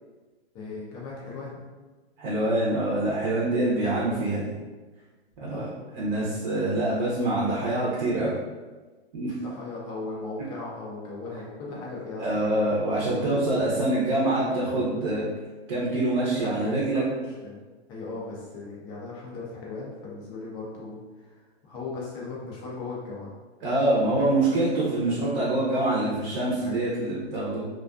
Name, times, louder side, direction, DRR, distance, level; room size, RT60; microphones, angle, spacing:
voice 1, 0.5-1.5 5.5-5.7 9.4-12.9 13.2-13.4 16.3-17.6 17.9-23.3 26.6-26.8, left 3 dB, 15° left, -5 dB, 0.3 m, -38 dB
voice 2, 2.2-4.4 5.4-5.7 5.9-8.3 9.1-9.3 12.2-15.2 15.7-17.0 23.6-27.6, right 2 dB, 45° right, -6 dB, 0.7 m, -25 dB
2.4 x 2.3 x 2.3 m, 1.3 s
hypercardioid pair, 140°, 32 cm